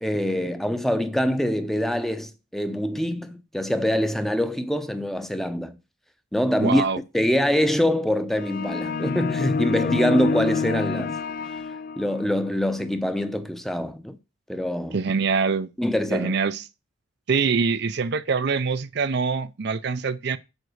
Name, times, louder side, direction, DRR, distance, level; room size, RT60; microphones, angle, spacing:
voice 1, 0.0-5.8 6.3-6.8 7.1-11.1 12.0-14.2 14.5-15.0 15.8-16.4, equal, ahead, 0.7 m, -24 dB
voice 2, 6.6-7.0 14.9-15.7 16.1-16.6 17.3-20.4, right 5 dB, 55° right, 0.5 m, -24 dB
sound 1, 8.4-12.3, left 5 dB, 45° left, 0.4 m, -27 dB
8.0 x 5.2 x 6.3 m
head